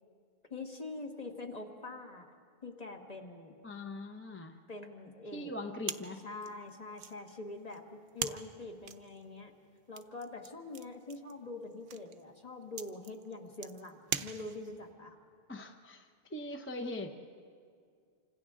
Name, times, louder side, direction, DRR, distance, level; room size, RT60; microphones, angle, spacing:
voice 1, 0.5-2.3 2.6-3.6 4.7-5.5 6.2-9.5 9.9-15.2, left 2 dB, 40° left, 2 dB, 1.7 m, -44 dB
voice 2, 3.6-4.6 5.3-6.2 15.5-17.1, left 1 dB, 15° left, 5 dB, 0.7 m, -41 dB
sound 1, 5.8-14.9, right 7 dB, 70° right, 0.9 m, -44 dB
28.0 x 25.5 x 3.7 m, 2.2 s
omnidirectional pair, 1.1 m